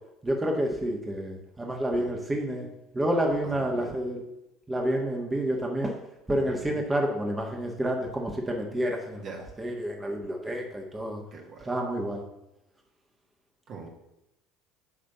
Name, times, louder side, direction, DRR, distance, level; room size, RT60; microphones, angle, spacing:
voice 1, 0.2-2.7 2.9-4.2 4.7-6.0 6.3-9.2 9.6-11.2 11.6-12.2, right 1 dB, 15° right, 1 dB, 1.4 m, -29 dB
voice 2, 3.4-4.0 6.5-6.8 9.2-9.5 11.3-11.8 13.7-13.9, right 5 dB, 50° right, 1 dB, 1.8 m, -43 dB
9.8 x 3.3 x 6.7 m, 0.88 s
hypercardioid pair, 70°, 0 cm